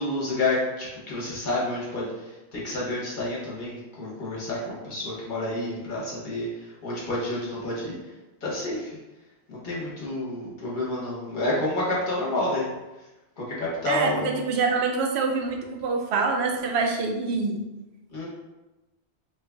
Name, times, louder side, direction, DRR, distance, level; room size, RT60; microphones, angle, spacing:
voice 1, 0.0-8.0 8.4-9.0 9.5-12.7 13.4-14.3 18.1-18.2, left 1 dB, 45° left, -5 dB, 1.1 m, -29 dB
voice 2, 13.9-17.6, right 4 dB, 70° right, 2 dB, 0.8 m, -25 dB
3.1 x 2.4 x 3.3 m, 1.0 s
omnidirectional pair, 1.2 m